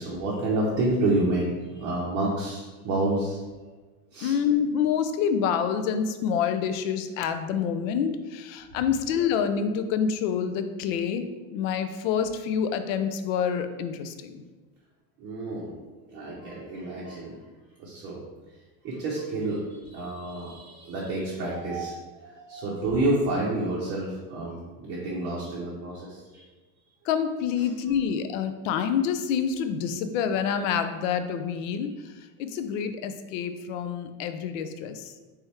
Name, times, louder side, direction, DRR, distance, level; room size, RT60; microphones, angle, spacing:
voice 1, 0.0-3.4 4.1-4.4 15.2-17.4 17.8-18.2 18.8-26.5, right 2 dB, 30° right, -5 dB, 0.7 m, -29 dB
voice 2, 4.2-11.2 11.5-14.4 27.0-35.1, left 7 dB, 60° left, 9 dB, 0.5 m, -27 dB
3.4 x 3.3 x 4.2 m, 1.3 s
supercardioid pair, 160°, 45 cm